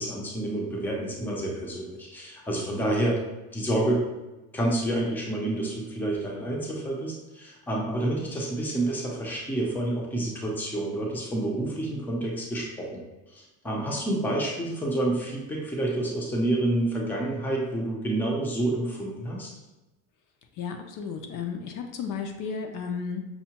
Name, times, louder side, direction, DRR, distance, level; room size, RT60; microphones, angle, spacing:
voice 1, 0.0-3.2 3.5-4.0 4.5-13.0 13.3-19.5, right 1 dB, 5° left, -2 dB, 0.5 m, -28 dB
voice 2, 13.7-14.0 20.6-23.2, left 6 dB, 55° left, 5 dB, 0.5 m, -34 dB
5.6 x 2.1 x 2.9 m, 1.1 s
cardioid pair, 160°, 38 cm